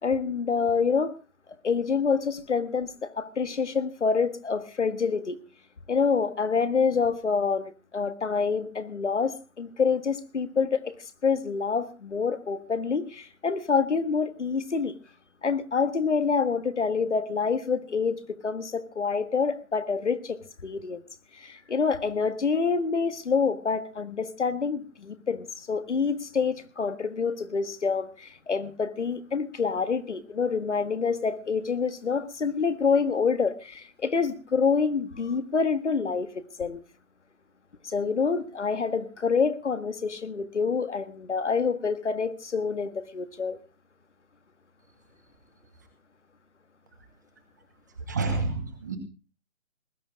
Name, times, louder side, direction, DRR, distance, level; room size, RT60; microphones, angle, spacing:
voice 1, 0.0-1.1 1.6-5.4 5.9-10.9 11.2-14.9 15.4-21.0 21.3-36.3 36.6-36.8 37.8-43.6, left 5 dB, 55° left, 1.7 m, -27 dB
voice 2, 48.1-49.0, right 3 dB, 15° right, 1.2 m, -28 dB
20.0 x 11.0 x 4.7 m
hypercardioid pair, 170°, 42 cm